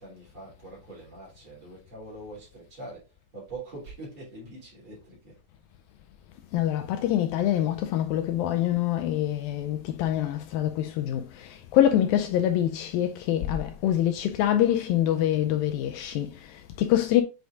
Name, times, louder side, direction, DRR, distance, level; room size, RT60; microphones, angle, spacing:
voice 1, 0.0-5.4, right 2 dB, 35° right, 3.7 m, -43 dB
voice 2, 6.5-17.2, left 11 dB, 80° left, 2.2 m, -25 dB
7.8 x 5.1 x 2.4 m
omnidirectional pair, 4.4 m